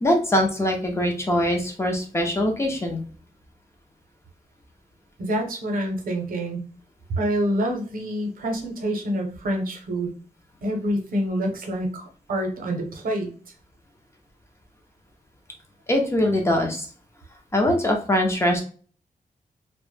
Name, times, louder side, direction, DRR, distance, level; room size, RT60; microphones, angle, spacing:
voice 1, 0.0-3.0 15.9-16.9 17.5-18.6, left 1 dB, 20° left, 2 dB, 0.4 m, -22 dB
voice 2, 5.2-6.6 7.1-10.1 10.6-13.3, right 1 dB, 75° right, 2 dB, 0.6 m, -27 dB
2.0 x 2.0 x 3.1 m, 0.40 s
wide cardioid pair, 175°, 15 cm